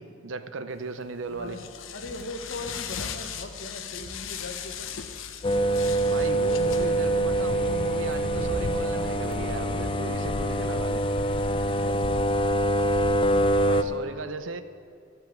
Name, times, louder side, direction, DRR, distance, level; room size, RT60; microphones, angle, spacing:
voice 1, 0.0-1.6 6.1-11.1 13.6-14.6, right 4 dB, 80° right, 11 dB, 0.7 m, -36 dB
sound 1, 0.8-13.2, left 7 dB, 90° left, 0.8 m, -41 dB
voice 2, 1.3-4.9 11.6-12.4, left 2 dB, 60° left, 4 dB, 1.3 m, -40 dB
sound 2, 5.4-13.8, right 1 dB, 25° left, 0.4 m, -25 dB
sound 3, 6.6-11.9, equal, 5° left, 0.8 m, -41 dB
12.5 x 5.5 x 9.1 m, 2.3 s
head